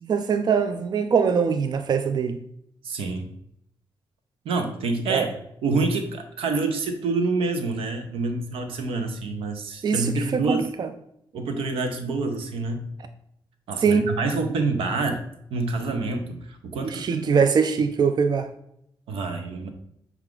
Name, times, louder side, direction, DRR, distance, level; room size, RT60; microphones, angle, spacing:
voice 1, 0.0-2.4 5.1-5.3 9.8-10.9 13.8-14.1 16.8-18.5, right 6 dB, 50° right, 0.4 m, -22 dB
voice 2, 2.8-3.3 4.4-5.3 5.6-10.7 11.3-12.9 13.7-15.2 15.5-17.4 19.1-19.7, right 3 dB, 85° right, 0.6 m, -27 dB
5.8 x 2.4 x 3.6 m
cardioid pair, 60°, 9 cm